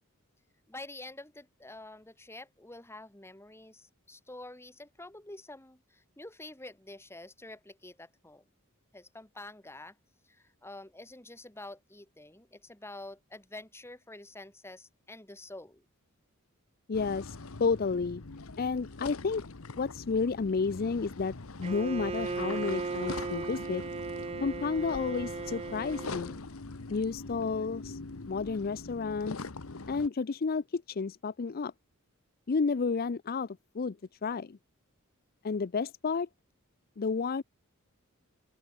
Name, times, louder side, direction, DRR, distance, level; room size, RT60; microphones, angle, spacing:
voice 1, 0.7-8.4 8.9-10.0 10.2-15.8, left 2 dB, 10° left, 3.1 m, -47 dB
sound 1, 16.9-30.1, left 3 dB, 70° left, 1.2 m, -43 dB
voice 2, 16.9-18.2 18.6-19.4 19.8-23.8 24.4-26.4 26.9-28.0 28.3-29.4 29.9-31.7 32.5-34.0 34.2-34.6 35.4-36.3 37.0-37.4, left 4 dB, 45° left, 0.5 m, -31 dB
Bowed string instrument, 21.6-26.4, right 4 dB, 25° right, 0.5 m, -37 dB
open air
head